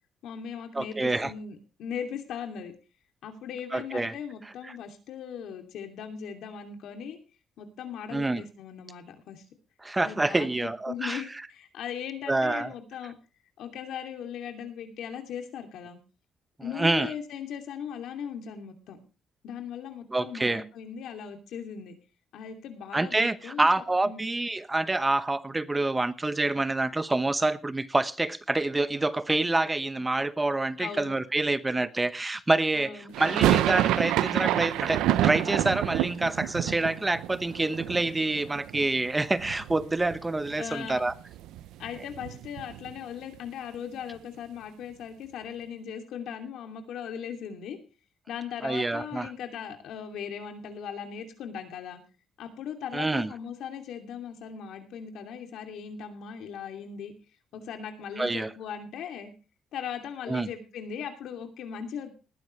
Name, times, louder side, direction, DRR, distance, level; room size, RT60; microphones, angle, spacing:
voice 1, 0.2-2.7 3.2-7.2 7.6-9.4 10.0-13.1 13.6-16.0 16.6-19.0 19.4-21.9 22.3-23.7 24.0-24.2 30.8-31.2 32.8-33.1 40.6-41.0 41.8-47.8 48.3-52.0 52.4-57.1 57.5-59.3 59.7-62.1, left 8 dB, 80° left, 2.7 m, -38 dB
voice 2, 0.7-1.3 3.7-4.1 4.6-4.7 8.1-8.4 9.8-11.2 12.3-12.7 16.8-17.1 20.1-20.6 22.9-41.2 48.6-49.3 52.9-53.3 58.2-58.5 60.3-60.5, right 2 dB, 15° right, 0.9 m, -27 dB
sound 1, 33.1-39.1 39.3-40.2 40.5-40.6 40.8-43.0, right 13 dB, 90° right, 0.6 m, -28 dB
19.5 x 10.0 x 3.3 m
cardioid pair, 90°, 0 cm